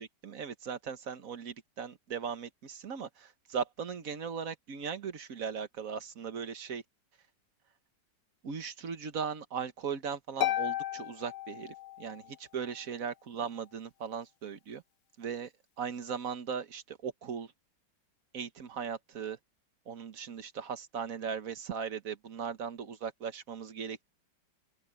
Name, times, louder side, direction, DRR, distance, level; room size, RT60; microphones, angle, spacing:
voice 1, 0.0-6.8 8.4-14.8 15.2-15.5 15.8-17.5 18.3-19.4 19.9-24.0, right 6 dB, 55° right, 1.6 m, -38 dB
Harp, 10.4-12.3, left 13 dB, 60° left, 0.9 m, -34 dB
open air
omnidirectional pair, 1.9 m